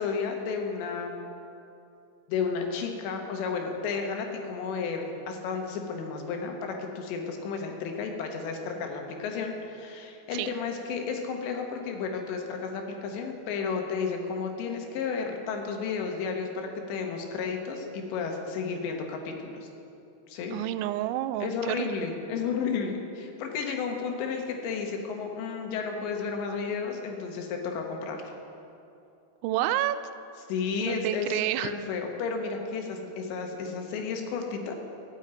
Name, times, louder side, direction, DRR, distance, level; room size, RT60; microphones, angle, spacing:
voice 1, 0.0-1.3 2.3-19.7 20.3-20.6 21.4-28.2 30.5-34.7, left 5 dB, 80° left, 3 dB, 3.4 m, -32 dB
voice 2, 20.5-21.9 29.4-30.0 30.8-31.7, right 14 dB, 90° right, 13 dB, 2.9 m, -29 dB
13.0 x 7.4 x 8.9 m, 2.7 s
omnidirectional pair, 5.2 m